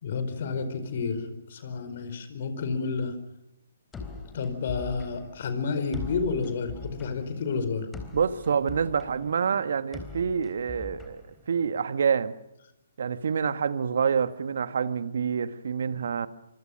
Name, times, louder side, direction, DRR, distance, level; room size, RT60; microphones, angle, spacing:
voice 1, 0.0-3.2 4.3-7.9, left 4 dB, 50° left, 10 dB, 4.8 m, -30 dB
sound 1, 3.9-11.9, left 4 dB, 10° left, 3.9 m, -43 dB
voice 2, 8.1-12.3 13.0-16.3, right 6 dB, 60° right, 12 dB, 1.6 m, -27 dB
26.0 x 24.5 x 6.5 m, 0.85 s
figure-of-eight pair, 135°, 0 cm